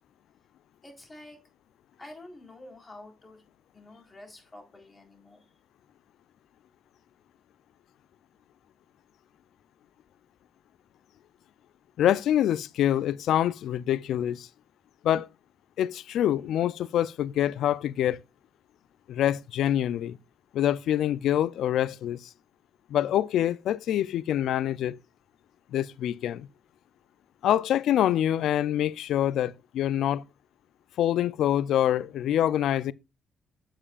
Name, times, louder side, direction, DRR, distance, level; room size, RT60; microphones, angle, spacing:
voice 1, 0.8-1.4 2.0-3.4 3.7-5.5, left 1 dB, 25° left, 3.8 m, -48 dB
voice 2, 12.0-14.5 15.0-15.3 15.8-18.2 19.1-20.2 20.5-22.3 22.9-25.0 25.7-26.5 27.4-30.2 31.0-32.9, left 11 dB, 80° left, 0.3 m, -25 dB
8.7 x 7.3 x 2.3 m
supercardioid pair, 70°, 0 cm